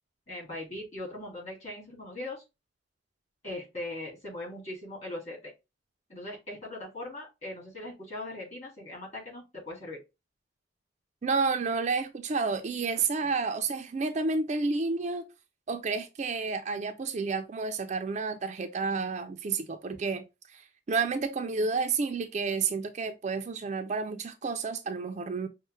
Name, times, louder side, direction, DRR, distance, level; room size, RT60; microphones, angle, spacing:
voice 1, 0.3-2.4 3.4-5.5 6.1-10.0 12.9-13.0, left 1 dB, 35° left, 2.2 m, -40 dB
voice 2, 11.2-15.3 15.7-20.6 20.9-25.5, right 4 dB, 40° right, 0.4 m, -30 dB
5.3 x 2.1 x 3.1 m
head